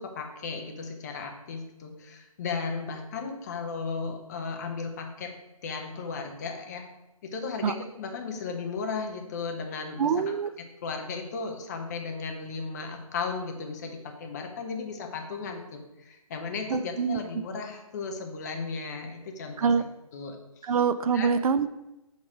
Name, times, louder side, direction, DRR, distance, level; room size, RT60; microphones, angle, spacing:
voice 1, 0.0-5.3 5.6-6.9 7.3-10.1 10.8-19.7 20.1-20.7 21.1-21.4, left 4 dB, 30° left, 4 dB, 0.7 m, -35 dB
voice 2, 10.0-10.5 16.7-17.2 19.6-19.8 20.6-21.7, right 6 dB, 75° right, 13 dB, 0.4 m, -25 dB
6.3 x 4.0 x 4.7 m, 0.95 s
hypercardioid pair, 160°, 19 cm